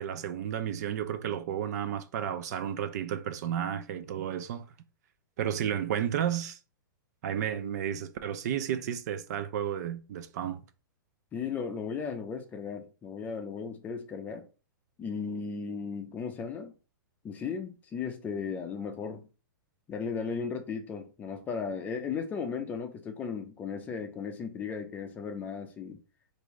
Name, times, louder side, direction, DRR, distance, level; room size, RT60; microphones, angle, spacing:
voice 1, 0.0-4.7 5.4-6.6 7.2-10.6, right 9 dB, 50° right, 0.5 m, -32 dB
voice 2, 11.3-14.4 15.0-16.7 17.2-19.3 19.9-26.0, left 5 dB, 15° left, 0.6 m, -36 dB
4.6 x 2.6 x 3.1 m
hypercardioid pair, 155°, 11 cm